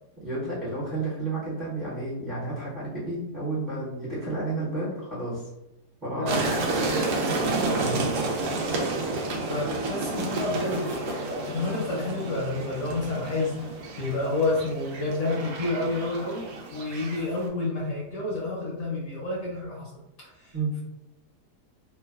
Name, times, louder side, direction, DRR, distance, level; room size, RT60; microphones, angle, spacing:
voice 1, 0.2-5.5 6.0-6.4 7.4-7.5 7.8-8.0 20.5-20.7, right 2 dB, 35° right, -9 dB, 0.9 m, -31 dB
voice 2, 6.1-6.4 9.4-13.7 14.0-19.9 20.4-20.5, left 2 dB, 65° left, -4 dB, 1.0 m, -30 dB
sound 1, 6.3-17.5, right 2 dB, 70° right, 0.8 m, -30 dB
2.9 x 2.2 x 2.3 m, 0.92 s
omnidirectional pair, 1.8 m